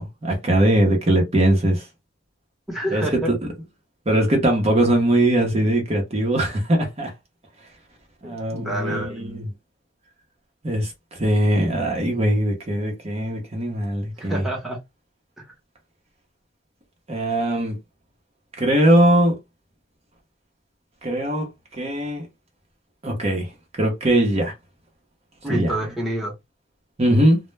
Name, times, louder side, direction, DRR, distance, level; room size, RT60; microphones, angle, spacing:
voice 1, 0.0-1.8 2.9-3.0 4.1-7.1 8.2-9.4 10.6-10.9 11.2-14.4 17.1-17.8 18.6-19.3 21.0-21.5 21.8-22.3 23.0-23.5 23.8-24.5 25.5-25.8 27.0-27.4, right 1 dB, 35° right, 0.7 m, -20 dB
voice 2, 2.7-3.3 8.2-9.2 14.2-14.8 15.4-15.5 25.4-26.3, right 1 dB, ahead, 0.9 m, -28 dB
2.1 x 2.0 x 3.2 m
head